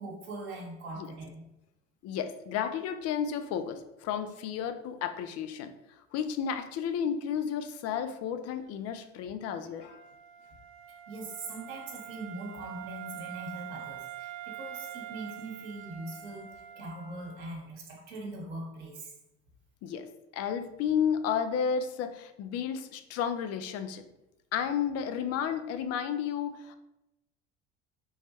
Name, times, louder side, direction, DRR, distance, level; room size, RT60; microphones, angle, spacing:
voice 1, 0.0-1.4 11.1-19.1, right 2 dB, 75° right, -1 dB, 0.9 m, -41 dB
voice 2, 2.0-10.0 19.8-24.0 24.5-26.8, left 8 dB, 45° left, 10 dB, 0.4 m, -32 dB
Wind instrument woodwind instrument, 9.7-17.5, right 12 dB, 40° right, 0.4 m, -45 dB
3.2 x 2.2 x 2.9 m, 0.90 s
hypercardioid pair, 70°, 34 cm